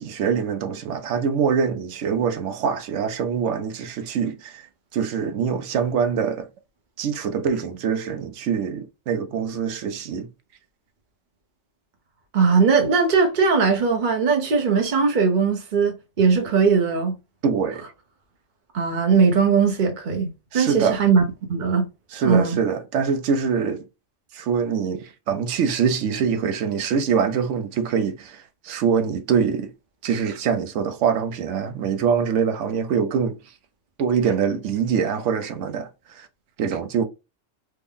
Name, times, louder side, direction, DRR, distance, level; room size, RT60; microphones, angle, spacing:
voice 1, 0.0-4.7 4.9-6.5 7.0-10.3 17.4-17.8 20.5-21.0 22.1-23.9 24.3-29.7 30.0-33.4 34.0-36.3 36.6-37.0, right 6 dB, 70° right, 0.9 m, -24 dB
voice 2, 12.3-17.2 18.7-20.3 20.5-21.2 21.5-21.9 22.2-22.6, right 5 dB, 40° right, 0.9 m, -19 dB
3.3 x 2.0 x 3.6 m
omnidirectional pair, 1.3 m